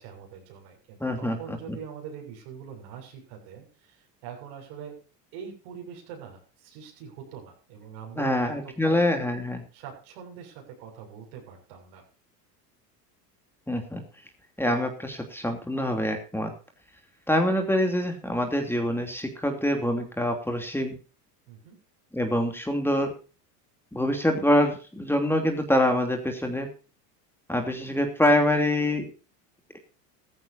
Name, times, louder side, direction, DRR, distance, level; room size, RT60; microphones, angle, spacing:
voice 1, 0.0-4.9 5.3-9.0 9.7-12.0 21.5-21.8, right 7 dB, 65° right, 2 dB, 7.1 m, -43 dB
voice 2, 1.0-1.8 8.2-9.6 13.7-14.0 14.6-16.5 17.3-21.0 22.1-23.1 23.9-26.7 27.5-29.1, left 1 dB, 5° left, 4 dB, 3.1 m, -25 dB
16.0 x 15.0 x 2.8 m, 0.35 s
hypercardioid pair, 90°, 48 cm